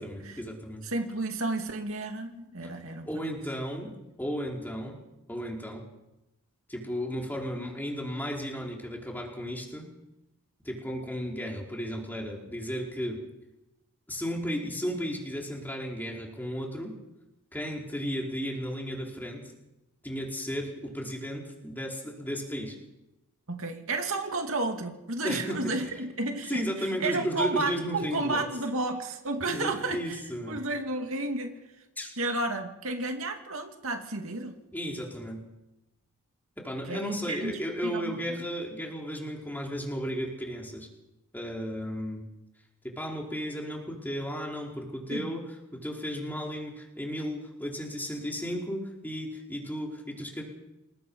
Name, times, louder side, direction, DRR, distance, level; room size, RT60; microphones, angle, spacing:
voice 1, 0.0-0.8 3.1-3.9 4.2-5.0 5.3-5.8 6.7-9.9 10.6-13.2 14.1-16.9 17.5-19.4 20.0-22.7 25.2-25.9 26.5-28.4 29.5-30.6 32.0-32.1 34.7-35.4 36.6-40.9 41.3-42.3 42.8-50.4, equal, 10° left, -1 dB, 4.6 m, -34 dB
voice 2, 0.8-3.4 23.5-30.2 30.5-31.5 32.2-34.6 36.8-38.5 45.1-45.3, right 2 dB, 70° right, 4 dB, 2.6 m, -32 dB
28.0 x 20.5 x 5.7 m, 0.95 s
head